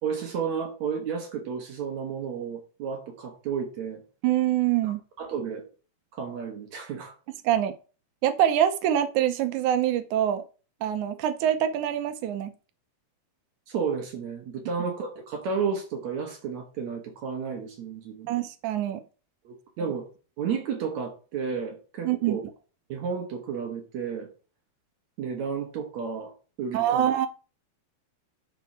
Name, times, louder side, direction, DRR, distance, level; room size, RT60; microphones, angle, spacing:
voice 1, 0.0-4.0 4.8-5.6 6.1-7.1 13.7-18.3 19.4-20.1 20.4-22.4 22.9-24.3 25.2-27.0, right 6 dB, 60° right, 2.2 m, -32 dB
voice 2, 4.2-5.0 7.4-7.7 8.2-10.4 10.8-12.5 18.3-19.0 22.0-22.4 26.7-27.3, right 11 dB, 90° right, 1.7 m, -24 dB
10.5 x 4.6 x 4.6 m
omnidirectional pair, 4.5 m